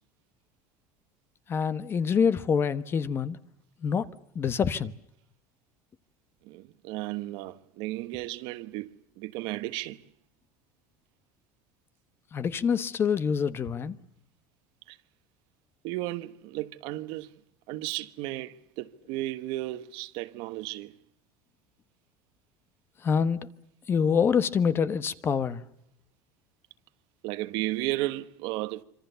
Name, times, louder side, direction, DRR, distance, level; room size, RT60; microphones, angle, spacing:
voice 1, 1.5-3.4 3.8-4.1 4.3-4.9 12.3-13.9 23.0-23.5 23.9-25.6, left 6 dB, 25° left, 1.2 m, -26 dB
voice 2, 6.4-10.0 14.9-15.0 15.8-17.3 17.7-20.9 27.2-28.8, right 17 dB, 60° right, 1.3 m, -34 dB
26.0 x 26.0 x 6.9 m
cardioid pair, 155°, 9 cm